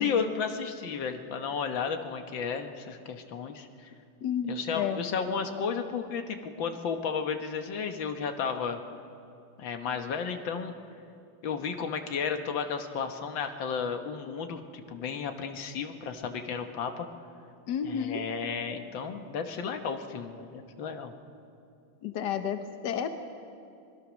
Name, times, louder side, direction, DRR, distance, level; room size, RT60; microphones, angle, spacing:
voice 1, 0.0-3.9 4.5-8.8 9.6-10.7 11.4-17.1 17.8-21.1, left 6 dB, 85° left, 6 dB, 2.0 m, -33 dB
voice 2, 4.2-5.1 17.7-18.2 22.0-23.1, left 8 dB, 65° left, 8 dB, 1.5 m, -31 dB
24.5 x 20.5 x 6.3 m, 2.5 s
omnidirectional pair, 2.0 m